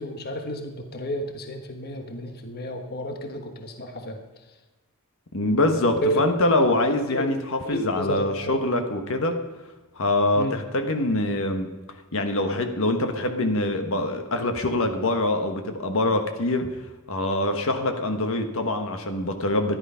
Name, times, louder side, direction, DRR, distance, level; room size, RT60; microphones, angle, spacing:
voice 1, 0.0-4.2 6.0-6.2 7.1-7.3 7.6-8.5 10.4-10.6, equal, 45° left, 5 dB, 1.2 m, -31 dB
voice 2, 5.3-9.3 10.0-11.7 12.1-16.7 17.1-19.8, left 2 dB, 65° left, 6 dB, 1.3 m, -24 dB
14.0 x 11.0 x 5.7 m, 1.2 s
head